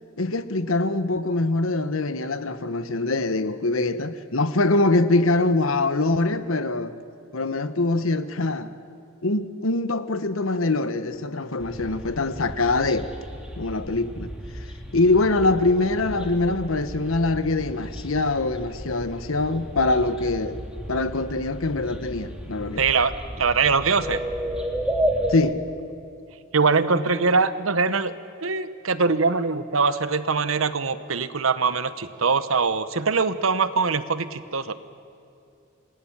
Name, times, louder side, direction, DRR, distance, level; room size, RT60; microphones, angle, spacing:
voice 1, 0.2-6.9 7.3-8.7 9.2-13.1 13.6-14.3 14.9-20.6 20.9-22.8 25.3-25.6, left 2 dB, 85° left, 1.2 m, -23 dB
sound 1, 11.6-25.4, equal, 5° right, 2.5 m, -33 dB
voice 2, 22.8-24.2 26.5-28.1 28.4-34.7, right 4 dB, 80° right, 1.0 m, -22 dB
28.0 x 20.0 x 7.4 m
head